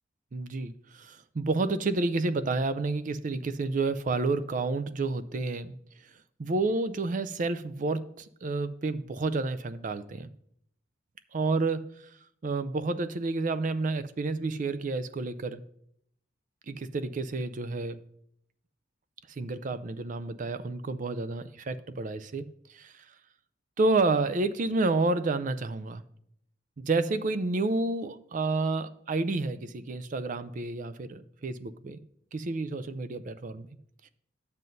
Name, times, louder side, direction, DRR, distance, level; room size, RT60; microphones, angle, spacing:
voice 1, 0.3-5.7 6.4-10.3 11.3-11.9 12.4-15.6 16.7-18.0 19.4-22.5 22.7-22.9 23.8-26.0 26.8-32.0 32.3-33.7, right 3 dB, 45° right, 13 dB, 0.4 m, -30 dB
10.5 x 7.5 x 2.7 m, 0.71 s
head